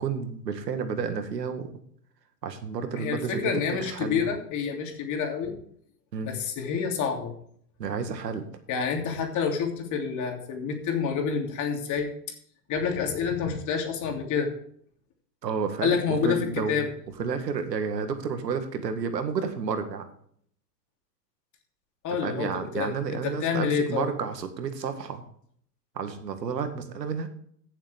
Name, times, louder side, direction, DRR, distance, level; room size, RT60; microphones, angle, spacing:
voice 1, 0.0-1.7 2.4-4.3 6.1-6.3 7.8-8.4 15.4-16.8 17.2-20.1 22.1-25.2 26.0-27.3, right 6 dB, 85° right, 8 dB, 1.8 m, -31 dB
voice 2, 2.9-5.5 6.2-7.3 8.7-12.1 12.7-14.5 15.8-16.9 22.0-22.9 23.2-24.1, left 6 dB, 40° left, 2 dB, 3.1 m, -28 dB
15.5 x 7.2 x 3.5 m, 0.62 s
hypercardioid pair, 105°, 48 cm